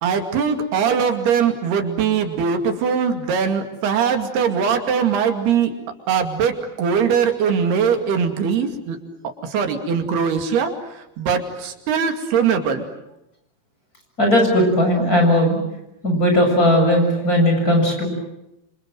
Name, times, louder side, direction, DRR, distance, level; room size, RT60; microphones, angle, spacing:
voice 1, 0.0-5.7 6.1-6.5 6.8-9.0 9.5-10.7 11.2-12.8, right 6 dB, 90° right, 6 dB, 4.4 m, -21 dB
voice 2, 14.2-15.6 16.0-18.1, left 1 dB, 20° left, 3 dB, 7.5 m, -17 dB
28.0 x 26.5 x 7.6 m, 0.86 s
omnidirectional pair, 4.4 m